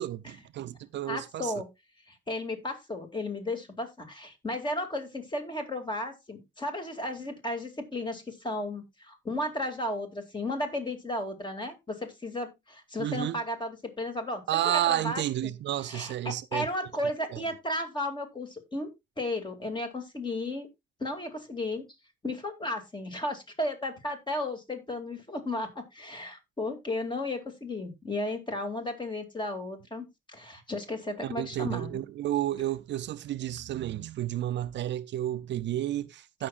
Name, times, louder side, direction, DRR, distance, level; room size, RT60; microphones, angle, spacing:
voice 1, 0.0-1.5 13.0-13.4 14.5-16.7 17.3-17.4 31.2-36.5, right 13 dB, 65° right, 0.5 m, -31 dB
voice 2, 1.1-1.7 2.1-15.5 15.9-18.9 19.2-20.7 21.0-21.8 22.2-32.0, left 1 dB, 25° left, 2.4 m, -34 dB
16.0 x 5.9 x 2.4 m
cardioid pair, 90°, 20 cm